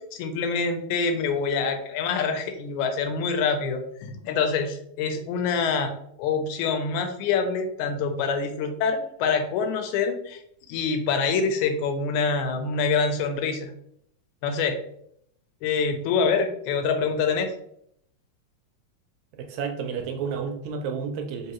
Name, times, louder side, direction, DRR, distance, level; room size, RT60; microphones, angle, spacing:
voice 1, 0.1-5.9 6.2-10.4 10.7-13.7 14.4-14.8 15.6-17.5, left 5 dB, 85° left, 6 dB, 2.0 m, -25 dB
voice 2, 19.3-21.5, right 6 dB, 80° right, 4 dB, 1.8 m, -31 dB
4.6 x 3.0 x 2.9 m, 0.70 s
omnidirectional pair, 3.4 m